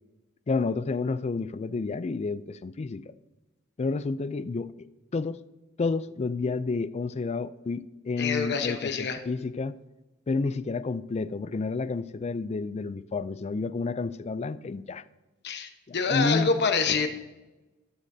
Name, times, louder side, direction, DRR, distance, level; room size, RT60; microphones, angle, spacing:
voice 1, 0.5-3.1 3.8-4.9 5.1-5.4 5.8-9.8 10.3-15.0 15.9-16.7, left 3 dB, 30° left, 0.3 m, -30 dB
voice 2, 8.2-9.2 15.4-17.1, left 5 dB, 50° left, 1.0 m, -26 dB
13.0 x 12.5 x 2.7 m
head